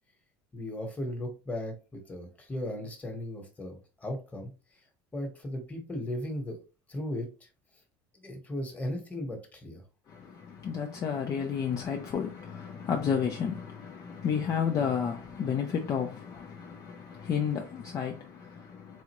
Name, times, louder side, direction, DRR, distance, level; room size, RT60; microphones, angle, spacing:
voice 1, 0.5-4.5 5.1-6.6 6.9-7.3 8.2-9.8, left 1 dB, 15° left, 1.2 m, -36 dB
voice 2, 10.1-19.0, left 7 dB, 40° left, 0.5 m, -32 dB
4.1 x 2.4 x 3.0 m
cardioid pair, 125°, 10 cm